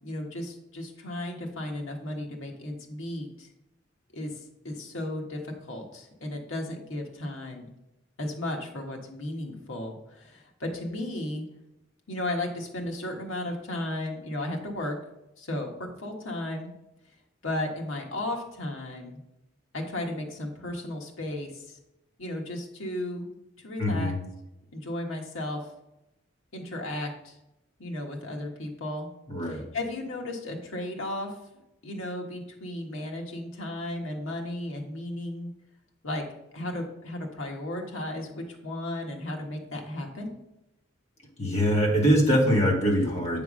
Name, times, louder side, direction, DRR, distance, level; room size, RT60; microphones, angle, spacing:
voice 1, 0.0-3.5 4.1-7.7 8.2-11.4 12.1-15.0 15.4-16.7 17.4-19.2 19.7-21.8 22.2-23.3 23.6-24.1 24.7-25.6 26.5-27.4 27.8-29.1 29.4-31.3 31.8-35.5 36.0-36.2 36.5-40.3, left 1 dB, 85° left, 1 dB, 1.4 m, -34 dB
voice 2, 23.8-24.2 29.3-29.6 41.4-43.4, equal, 35° left, -2 dB, 1.7 m, -23 dB
8.2 x 3.5 x 6.2 m, 0.89 s
head